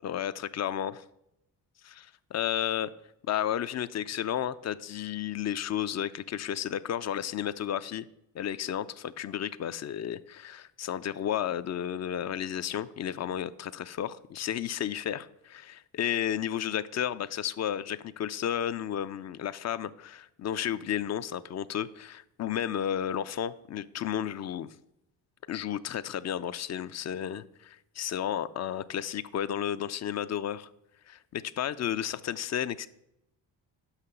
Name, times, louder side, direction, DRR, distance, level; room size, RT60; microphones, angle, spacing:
voice 1, 0.0-0.9 1.9-2.9 3.3-8.0 8.3-24.7 25.5-30.7 31.1-32.9, left 10 dB, 40° left, 16 dB, 0.4 m, -32 dB
5.8 x 5.7 x 6.7 m, 0.84 s
supercardioid pair, 70°, 46 cm